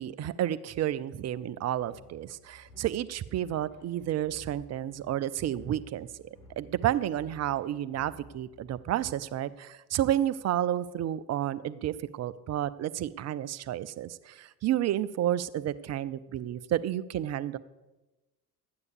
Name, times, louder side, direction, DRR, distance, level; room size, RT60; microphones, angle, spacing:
voice 1, 0.0-6.3 6.6-17.6, right 12 dB, 35° right, 16 dB, 0.6 m, -31 dB
sound 1, 1.7-9.2, equal, 65° left, 3.7 m, -55 dB
12.5 x 9.7 x 6.8 m, 1.1 s
figure-of-eight pair, 55°, 47 cm